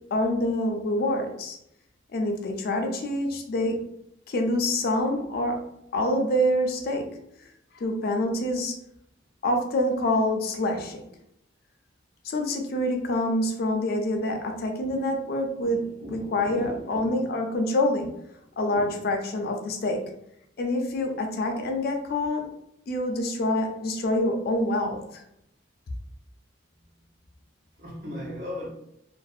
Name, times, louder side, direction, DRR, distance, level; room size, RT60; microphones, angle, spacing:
voice 1, 0.1-1.6 2.1-3.9 4.3-7.5 7.7-8.8 9.4-11.0 12.2-18.1 18.6-20.1 20.6-22.5 22.9-25.2, left 1 dB, 50° left, 0.4 m, -26 dB
voice 2, 15.6-17.3 18.7-19.0 27.8-28.7, left 1 dB, 60° right, 0.8 m, -38 dB
2.5 x 2.1 x 2.3 m
head